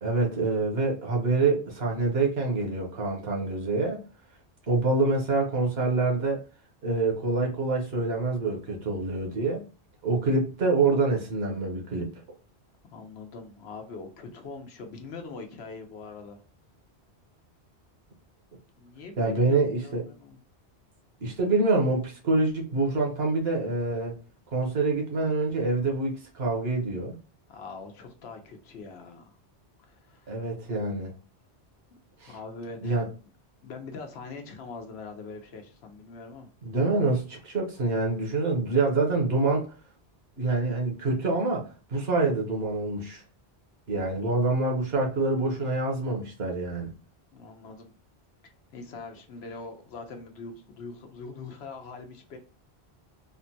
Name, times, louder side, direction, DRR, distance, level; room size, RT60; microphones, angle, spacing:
voice 1, 0.0-4.0 4.7-6.4 6.8-9.6 10.0-12.1 19.2-20.0 21.2-24.1 24.5-27.1 30.3-31.1 32.2-32.3 32.8-33.1 36.6-39.7 40.4-43.2 43.9-46.9, right 3 dB, 70° right, 1.2 m, -26 dB
voice 2, 12.9-16.4 18.8-20.4 27.5-29.4 29.9-30.3 31.9-32.0 32.3-33.0 33.6-36.5 44.2-44.3 47.3-47.9 48.4-52.4, left 4 dB, 80° left, 1.0 m, -42 dB
3.6 x 2.2 x 2.7 m
omnidirectional pair, 1.1 m